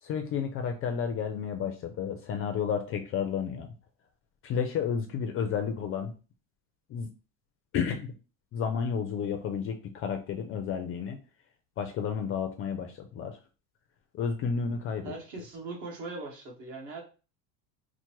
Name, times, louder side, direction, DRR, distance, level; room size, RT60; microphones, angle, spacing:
voice 1, 0.0-3.7 4.4-6.1 6.9-7.1 7.7-8.1 8.5-11.2 11.8-13.4 14.1-15.1, left 7 dB, 35° left, 6 dB, 0.4 m, -31 dB
voice 2, 15.0-17.0, right 3 dB, 50° right, -1 dB, 1.7 m, -40 dB
5.6 x 2.1 x 3.0 m, 0.34 s
cardioid pair, 150°, 39 cm